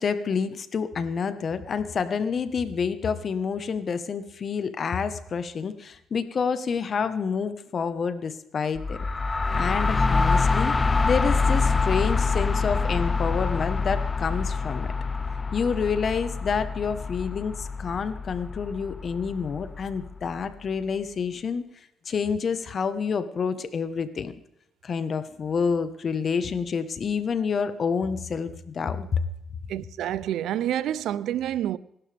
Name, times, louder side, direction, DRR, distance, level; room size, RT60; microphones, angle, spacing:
voice 1, 0.0-9.0 9.6-10.8 11.0-14.9 15.5-21.6 22.0-24.3 24.8-29.2, left 6 dB, 50° left, 1.3 m, -28 dB
sound 1, 8.7-20.4, left 4 dB, 25° left, 0.6 m, -26 dB
voice 2, 29.7-31.8, right 11 dB, 80° right, 0.5 m, -28 dB
26.0 x 12.0 x 3.5 m
cardioid pair, 90°, 0 cm